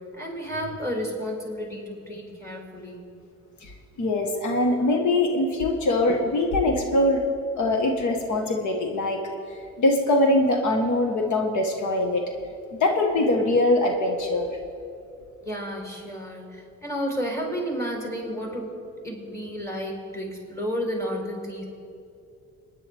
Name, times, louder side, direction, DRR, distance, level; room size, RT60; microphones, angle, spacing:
voice 1, 0.1-3.1 15.4-18.7 19.0-21.6, equal, 10° left, 0 dB, 4.4 m, -32 dB
voice 2, 4.0-7.2 7.6-9.2 9.8-12.2 12.8-14.5, left 2 dB, 75° left, 3 dB, 1.7 m, -22 dB
29.0 x 9.9 x 3.6 m, 2.6 s
cardioid pair, 90°, 30 cm